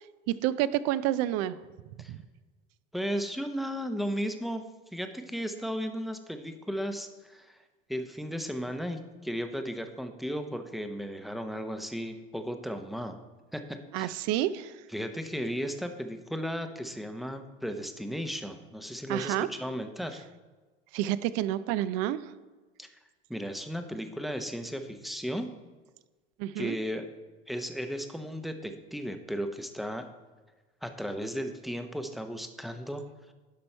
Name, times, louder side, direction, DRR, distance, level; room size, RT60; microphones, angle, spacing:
voice 1, 0.3-1.6 2.1-2.2 13.9-14.7 19.1-19.5 20.9-22.2 26.4-26.8, right 13 dB, 60° right, 16 dB, 0.5 m, -29 dB
voice 2, 2.9-4.6 4.9-7.6 7.9-13.2 13.5-14.1 14.9-20.2 22.8-22.9 23.3-25.5 26.6-27.1 27.5-30.1 30.8-33.3, equal, ahead, 7 dB, 0.7 m, -35 dB
11.5 x 5.4 x 4.4 m, 1.3 s
supercardioid pair, 100°, 29 cm